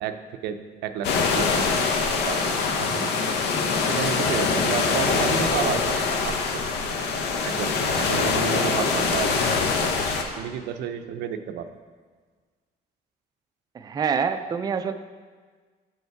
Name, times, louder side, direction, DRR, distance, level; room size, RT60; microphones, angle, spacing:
voice 1, 0.0-1.9 2.2-3.3 3.9-6.6 7.4-9.6 10.4-11.7, right 8 dB, 80° right, 9 dB, 0.5 m, -31 dB
sound 1, 1.0-10.2, left 4 dB, 80° left, 0.8 m, -24 dB
voice 2, 13.7-14.9, right 6 dB, 25° right, 8 dB, 0.4 m, -26 dB
7.2 x 5.4 x 4.6 m, 1.5 s
cardioid pair, 110°, 17 cm